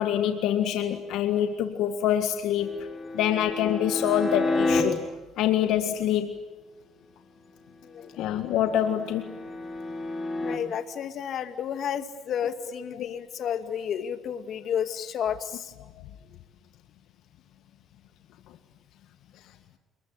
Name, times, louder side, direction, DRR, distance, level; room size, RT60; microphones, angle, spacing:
voice 1, 0.0-2.8 3.1-5.0 5.4-6.4 8.2-9.3 13.0-13.2, left 10 dB, 75° left, 7 dB, 1.7 m, -25 dB
sound 1, 2.6-4.8 8.2-10.6, left 2 dB, 15° left, 5.5 m, -30 dB
voice 2, 10.4-15.7, left 8 dB, 55° left, 9 dB, 2.2 m, -31 dB
29.0 x 21.5 x 9.0 m, 1.1 s
cardioid pair, 105°, 0 cm